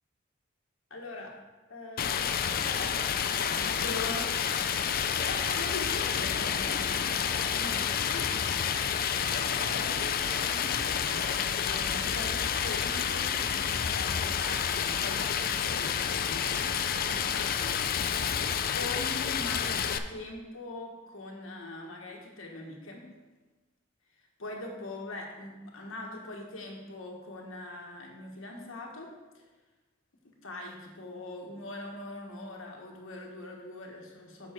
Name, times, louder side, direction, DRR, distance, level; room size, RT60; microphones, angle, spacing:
voice 1, 0.9-1.4 1.7-4.7 5.1-7.1 7.5-8.3 8.7-16.7 17.0-23.0 24.4-29.1 30.2-34.5, left 2 dB, 75° left, 0 dB, 1.4 m, -42 dB
Stream, 2.0-20.0, left 8 dB, 45° left, 0.4 m, -29 dB
7.1 x 6.0 x 4.5 m, 1.2 s
head